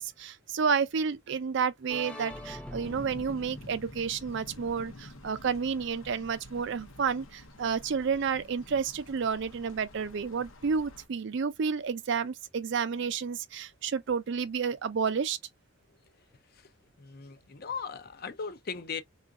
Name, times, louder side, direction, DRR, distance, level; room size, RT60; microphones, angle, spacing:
voice 1, 0.0-15.4, right 6 dB, 60° right, 0.4 m, -30 dB
sound 1, 1.9-5.7, left 1 dB, 5° left, 0.7 m, -45 dB
sound 2, 2.8-11.1, left 1 dB, 90° left, 0.8 m, -49 dB
voice 2, 15.9-16.7 17.0-19.0, left 5 dB, 50° left, 0.6 m, -39 dB
3.7 x 2.4 x 2.3 m
head